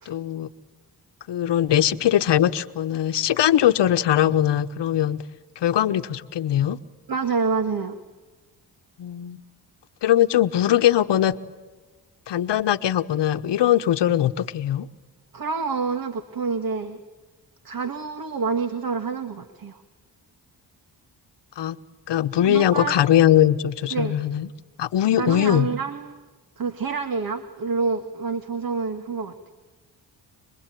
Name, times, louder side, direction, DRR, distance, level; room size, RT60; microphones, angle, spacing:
voice 1, 0.1-0.5 1.3-5.2 5.6-6.8 9.0-9.4 10.0-11.4 12.3-14.9 21.6-21.8 22.1-24.5 24.8-25.7, left 11 dB, 80° left, 11 dB, 1.1 m, -21 dB
voice 2, 7.1-8.0 15.3-17.0 17.6-19.8 22.4-23.0 23.9-24.2 25.2-26.2 26.6-29.5, right 5 dB, 55° right, 8 dB, 1.9 m, -27 dB
26.5 x 21.5 x 9.2 m, 1.3 s
cardioid pair, 70°, 41 cm